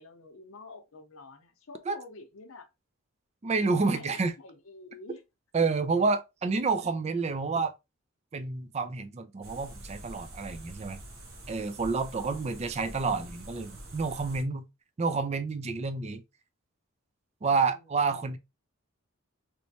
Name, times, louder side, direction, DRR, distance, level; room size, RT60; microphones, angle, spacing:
voice 1, 0.0-2.7 3.9-5.2 12.2-12.5 17.4-18.4, left 3 dB, 75° left, 0.7 m, -49 dB
voice 2, 3.4-4.3 5.5-7.7 8.3-11.0 11.5-14.6 15.0-16.2 17.4-18.4, right 4 dB, 30° right, 0.4 m, -29 dB
sound 1, 9.4-14.4, right 1 dB, 80° right, 1.2 m, -45 dB
3.2 x 3.1 x 2.7 m
head